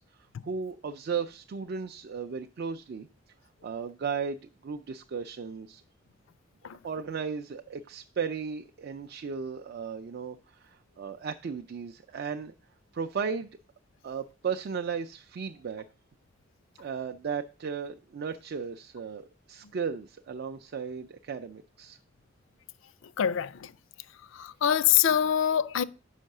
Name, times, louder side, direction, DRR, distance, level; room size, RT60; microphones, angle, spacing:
voice 1, 0.0-3.1 3.6-5.8 6.8-12.5 12.9-13.5 14.0-15.8 16.8-22.0, right 6 dB, 55° right, 0.4 m, -35 dB
voice 2, 23.2-23.7 24.3-25.8, left 9 dB, 85° left, 0.4 m, -24 dB
5.6 x 5.4 x 6.4 m
head